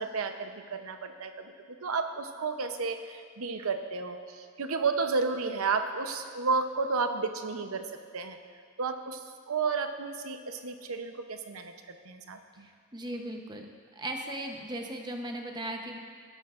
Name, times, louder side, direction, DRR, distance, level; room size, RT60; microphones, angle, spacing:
voice 1, 0.0-7.8 8.1-8.4 8.8-12.7, right 4 dB, 90° right, 7 dB, 0.8 m, -32 dB
voice 2, 12.6-13.7 14.0-16.0, right 1 dB, 20° right, 3 dB, 0.9 m, -37 dB
16.5 x 12.0 x 2.5 m, 2.1 s
head